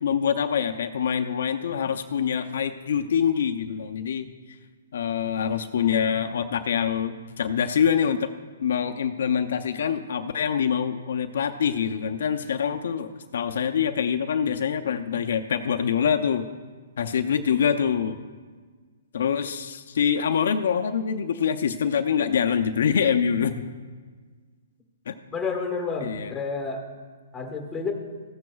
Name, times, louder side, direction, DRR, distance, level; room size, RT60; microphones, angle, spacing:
voice 1, 0.0-4.3 4.9-8.3 8.6-16.5 17.0-18.2 19.1-23.7 25.1-25.2 26.0-26.3, left 7 dB, 65° left, 7 dB, 0.5 m, -25 dB
voice 2, 25.3-26.8 27.3-27.9, left 4 dB, 10° left, 3 dB, 1.2 m, -30 dB
15.0 x 10.5 x 2.3 m, 1.5 s
hypercardioid pair, 160°, 0 cm